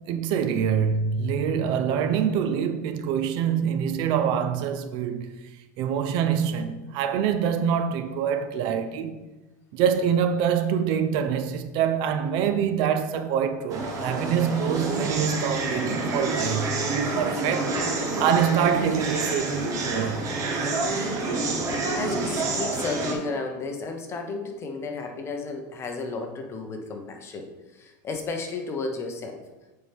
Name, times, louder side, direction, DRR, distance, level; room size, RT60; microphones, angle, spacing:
voice 1, 0.0-5.4 5.8-9.2 9.7-17.7 18.2-19.6 19.8-20.3, right 8 dB, 50° right, 0.6 m, -25 dB
sound 1, 13.7-23.1, right 3 dB, 35° right, 1.2 m, -28 dB
voice 2, 21.9-27.5 27.7-29.4, left 3 dB, 25° left, 1.0 m, -33 dB
8.4 x 4.5 x 3.5 m
supercardioid pair, 130°, 10 cm